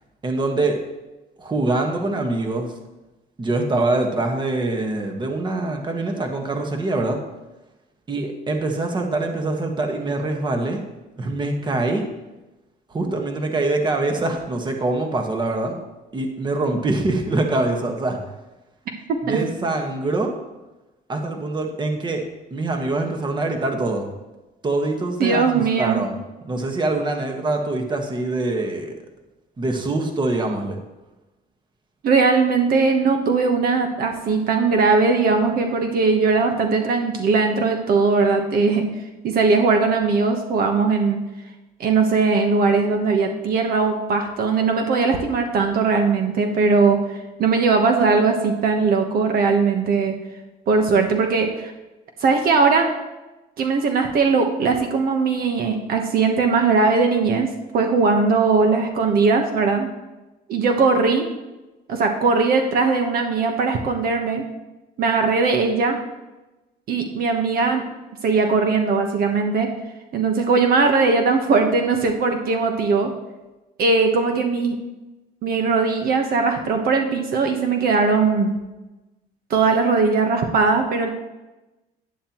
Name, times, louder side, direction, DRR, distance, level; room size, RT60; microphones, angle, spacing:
voice 1, 0.2-0.8 1.4-2.7 3.4-7.2 8.1-10.8 11.2-12.1 12.9-15.8 16.1-18.2 19.2-20.3 21.1-22.2 22.5-24.1 24.6-26.2 26.4-28.9 29.6-30.8, right 2 dB, 25° right, 3 dB, 1.5 m, -24 dB
voice 2, 25.2-26.0 32.0-38.8 39.2-41.2 41.8-50.1 50.7-51.7 52.2-52.9 53.6-57.5 57.7-59.9 60.5-61.3 61.9-64.4 65.0-66.0 66.9-67.8 68.2-69.7 70.1-73.1 73.8-74.8 75.4-78.6 79.5-81.1, right 4 dB, 60° right, 4 dB, 1.2 m, -19 dB
11.0 x 9.6 x 3.1 m, 1.1 s
cardioid pair, 110°, 17 cm